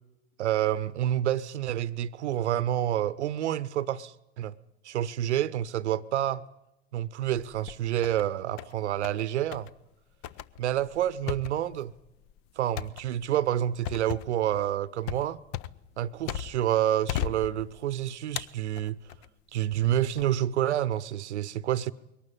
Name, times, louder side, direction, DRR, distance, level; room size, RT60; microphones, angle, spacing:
voice 1, 0.4-4.5 4.8-6.4 6.9-9.7 10.6-11.9 12.6-15.4 16.0-19.0 19.5-21.9, right 11 dB, 70° right, 0.9 m, -28 dB
sound 1, 7.3-8.2 8.6-9.2 9.5-9.7 10.2-16.7 17.1-17.9 18.4-19.3 19.8-20.2, left 12 dB, 40° left, 0.9 m, -37 dB
23.0 x 18.5 x 8.8 m
figure-of-eight pair, 90°, 36 cm